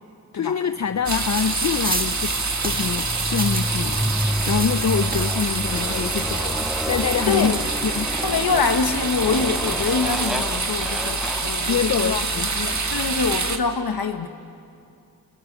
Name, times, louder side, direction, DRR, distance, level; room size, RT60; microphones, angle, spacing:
voice 1, 0.3-4.1 4.5-7.5 7.8-8.1 11.7-12.5, left 7 dB, 50° left, 11 dB, 0.6 m, -25 dB
Motorcycle, 0.9-13.6, equal, ahead, 0.6 m, -31 dB
sound 1, 1.1-13.6, right 3 dB, 50° right, 1.7 m, -26 dB
sound 2, 1.4-5.5 6.4-6.5 6.8-7.7 8.4-8.8, right 2 dB, 25° right, 1.8 m, -33 dB
voice 2, 7.3-7.6 8.2-12.2 12.5-14.3, left 5 dB, 90° left, 7 dB, 1.3 m, -25 dB
30.0 x 22.0 x 7.3 m, 2.5 s
cardioid pair, 50°, 35 cm